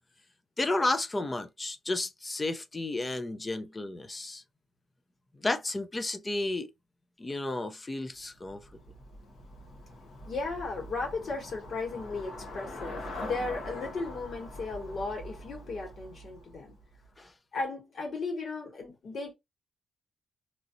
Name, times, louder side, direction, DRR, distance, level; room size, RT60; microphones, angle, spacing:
voice 1, 0.6-4.4 5.4-6.7 7.2-8.6 17.2-17.3, left 2 dB, 20° left, 0.5 m, -32 dB
Traffic noise roadway noise / Bicycle, 8.1-17.2, left 1 dB, 65° left, 1.1 m, -44 dB
voice 2, 10.3-16.8 17.5-19.3, left 3 dB, 50° left, 1.8 m, -36 dB
3.0 x 2.7 x 2.6 m
wide cardioid pair, 145°, 0 cm